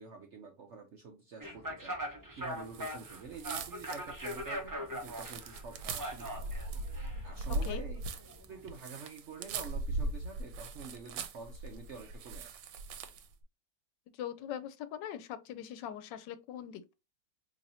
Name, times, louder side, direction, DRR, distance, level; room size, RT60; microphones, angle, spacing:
voice 1, 0.0-2.0 2.4-6.5 7.2-8.0 8.5-12.6, right 5 dB, 65° right, 0.7 m, -48 dB
sound 1, 1.4-8.7, equal, 25° right, 0.4 m, -42 dB
sound 2, 2.7-13.3, right 2 dB, 85° right, 1.2 m, -40 dB
voice 2, 14.1-16.9, left 10 dB, 85° left, 1.2 m, -41 dB
4.1 x 3.0 x 2.6 m
omnidirectional pair, 1.9 m